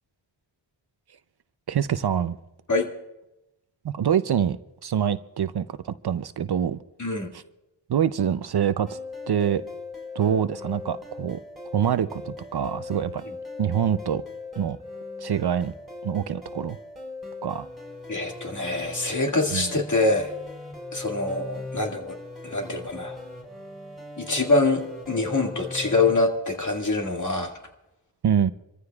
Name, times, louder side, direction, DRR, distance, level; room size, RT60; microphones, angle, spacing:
voice 1, 1.7-2.4 3.8-4.6 4.8-6.8 7.3-7.4 7.9-9.0 9.3-9.6 10.1-11.4 11.7-13.2 13.6-14.2 14.6-14.8 15.2-15.7 16.0-16.8 17.4-17.7 18.2-18.3 19.5-19.7 28.2-28.5, right 8 dB, 55° right, 0.6 m, -25 dB
sound 1, 8.9-26.1, left 3 dB, ahead, 4.6 m, -39 dB
voice 2, 18.1-20.3 20.9-22.2 22.4-23.2 24.2-27.5, left 2 dB, 40° left, 2.1 m, -25 dB
27.5 x 14.5 x 2.3 m
wide cardioid pair, 75°, 47 cm